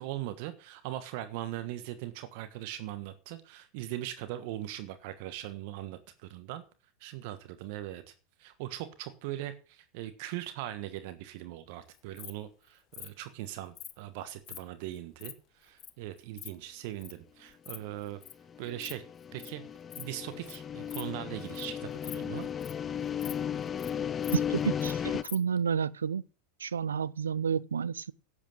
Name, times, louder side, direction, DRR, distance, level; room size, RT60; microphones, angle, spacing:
voice 1, 0.0-6.6 7.0-8.1 8.4-18.2 18.6-19.0 19.3-19.6 20.0-22.5, right 14 dB, 55° right, 1.4 m, -40 dB
Insect, 11.9-12.3 12.9-13.1 13.8-13.9 14.4-14.6 15.0-15.3 15.8-15.9 16.2-16.5 17.0-17.2 17.5-17.8 18.0-18.3 18.7-18.9 19.2-19.5 19.9-20.1 20.5-20.6 20.9-21.0 21.4-21.7 21.9-22.8 23.2-23.3 23.6-23.9 24.2-24.9 25.2-25.4, left 12 dB, 40° left, 1.2 m, -44 dB
sound 1, 18.5-25.2, left 8 dB, 25° left, 0.7 m, -35 dB
voice 2, 24.3-26.2 26.6-28.1, right 7 dB, 85° right, 0.6 m, -30 dB
11.0 x 8.4 x 7.8 m
hypercardioid pair, 90°, 0 cm